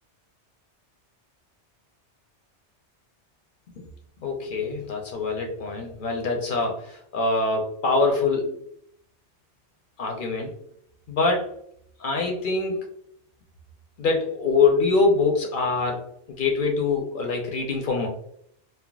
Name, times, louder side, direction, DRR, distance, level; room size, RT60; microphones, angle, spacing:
voice 1, 4.2-8.6 10.0-10.5 11.1-11.5 12.0-12.8 14.0-18.1, left 3 dB, 60° left, 2 dB, 0.6 m, -24 dB
3.4 x 2.1 x 2.2 m, 0.67 s
omnidirectional pair, 1.2 m